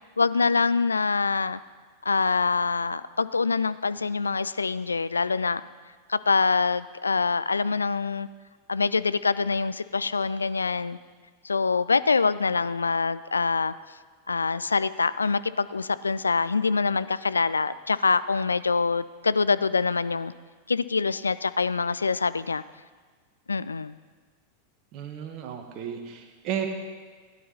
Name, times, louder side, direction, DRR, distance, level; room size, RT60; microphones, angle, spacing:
voice 1, 0.2-1.6 2.0-5.6 6.1-8.3 8.7-11.0 11.4-13.7 14.3-20.3 20.7-22.6 23.5-23.9, left 4 dB, 75° left, 15 dB, 0.3 m, -25 dB
voice 2, 24.9-26.7, right 9 dB, 40° right, 5 dB, 1.6 m, -33 dB
16.5 x 10.0 x 4.2 m, 1.5 s
figure-of-eight pair, 90°, 0 cm